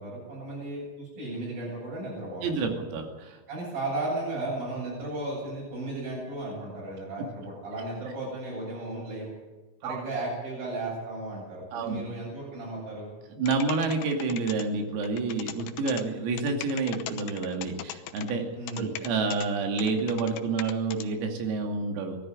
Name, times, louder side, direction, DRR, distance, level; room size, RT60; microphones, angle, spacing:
voice 1, 0.0-2.8 3.5-9.3 9.8-13.1 18.5-18.9, right 2 dB, 45° right, -7 dB, 9.7 m, -35 dB
voice 2, 2.4-3.4 9.8-10.0 11.7-12.0 13.4-18.5 18.8-22.2, right 4 dB, 85° right, 3 dB, 5.4 m, -29 dB
sound 1, 13.5-14.7 15.0-16.0 16.4-18.3 18.7-19.5 19.8-21.0, left 12 dB, 75° left, 3.1 m, -39 dB
20.5 x 14.0 x 9.7 m, 1.2 s
omnidirectional pair, 5.9 m